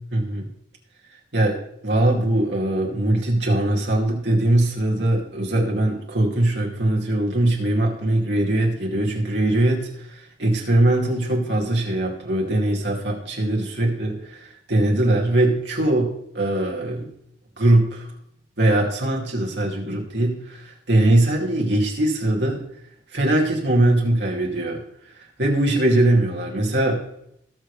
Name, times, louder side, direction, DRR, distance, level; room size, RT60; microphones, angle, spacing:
voice 1, 0.1-0.5 1.3-1.6 1.8-17.1 17.6-18.1 18.6-22.6 23.1-24.8 25.4-27.0, right 1 dB, 70° right, -1 dB, 2.5 m, -21 dB
19.5 x 6.5 x 3.3 m, 0.74 s
head